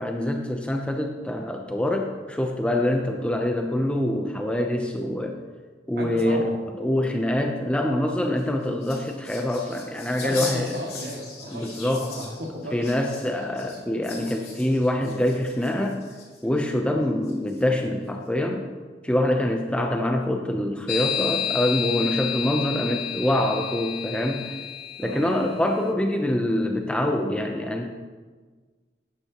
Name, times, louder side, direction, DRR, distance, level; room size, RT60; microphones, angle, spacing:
voice 1, 0.0-5.4 5.9-6.5 6.8-10.7 11.5-12.1 12.7-16.0 16.4-18.7 19.0-24.6 25.0-27.9, left 1 dB, 5° left, 3 dB, 0.6 m, -25 dB
voice 2, 6.0-6.6 10.2-12.9 25.0-25.3, equal, 60° right, -1 dB, 2.1 m, -34 dB
sound 1, 8.2-16.6 17.2-17.8, left 3 dB, 35° left, 2.5 m, -40 dB
sound 2, 20.9-25.6, left 9 dB, 55° left, 0.8 m, -30 dB
12.0 x 9.9 x 3.0 m, 1.4 s
head